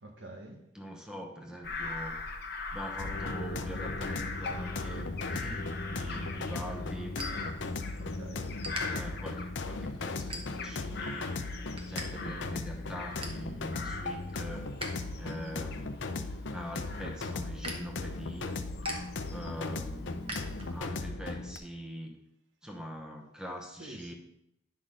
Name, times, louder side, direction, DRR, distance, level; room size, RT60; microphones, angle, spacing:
voice 1, 0.0-0.6 8.0-8.6 23.8-24.1, right 1 dB, 80° right, 1.4 m, -47 dB
voice 2, 0.7-7.2 8.9-11.4 11.9-14.7 15.1-18.5 19.0-22.2 22.6-24.1, equal, 5° right, 1.0 m, -43 dB
Bird vocalization bird call bird song / Crow, 1.6-10.0 10.3-13.4 13.7-19.7 20.2-20.8, left 4 dB, 55° left, 1.0 m, -42 dB
sound 1, 3.0-21.6, left 3 dB, 80° left, 0.6 m, -37 dB
sound 2, 7.1-8.1 8.4-8.8 9.4-9.6 10.2-10.9 11.2-12.1 12.3-12.4 12.8-13.5 13.9-14.9 15.3-21.0, right 1 dB, 30° right, 1.2 m, -44 dB
10.5 x 6.0 x 3.8 m
head